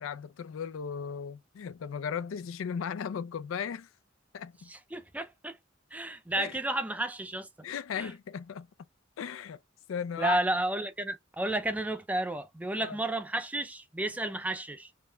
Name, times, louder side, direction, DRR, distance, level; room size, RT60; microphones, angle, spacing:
voice 1, 0.0-3.9 4.3-4.7 6.4-6.6 7.6-8.7 9.2-9.6 9.9-10.4 12.8-13.0, left 7 dB, 80° left, 0.4 m, -36 dB
voice 2, 4.7-5.6 5.9-7.5 8.0-8.1 10.2-14.9, right 1 dB, 10° right, 0.5 m, -32 dB
3.8 x 2.1 x 3.3 m
head